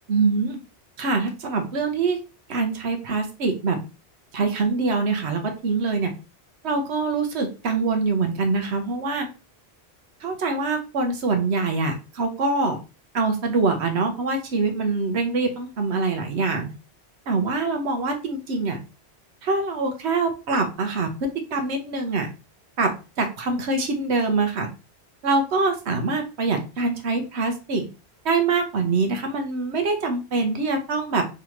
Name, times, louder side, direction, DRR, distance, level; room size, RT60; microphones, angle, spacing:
voice 1, 0.1-0.6 1.0-2.2 2.5-3.8 4.3-6.1 6.6-9.3 10.2-12.8 13.1-16.7 17.3-18.8 19.4-22.3 22.8-22.9 23.2-24.7 25.2-27.9 28.2-31.2, right 3 dB, 80° right, 5 dB, 1.1 m, -24 dB
3.7 x 3.2 x 3.0 m, 0.31 s
omnidirectional pair, 1.1 m